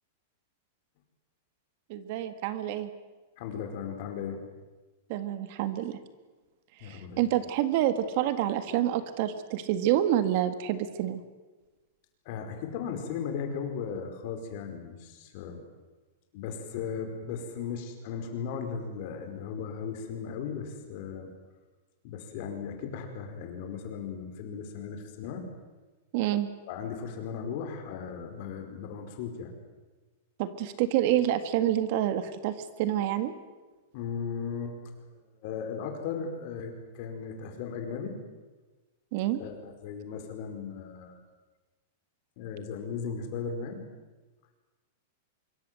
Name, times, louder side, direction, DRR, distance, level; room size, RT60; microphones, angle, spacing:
voice 1, 1.9-2.9 5.1-6.0 6.8-11.2 26.1-26.5 30.4-33.3 39.1-39.4, right 12 dB, 45° right, 11 dB, 1.7 m, -28 dB
voice 2, 3.4-4.5 6.8-7.3 12.2-15.6 16.3-21.3 22.0-25.5 26.7-29.6 33.9-34.7 35.0-35.1 35.4-38.2 39.4-41.2 42.4-43.8, left 6 dB, 45° left, 5 dB, 4.9 m, -36 dB
25.5 x 23.0 x 7.7 m, 1.3 s
supercardioid pair, 165°, 0 cm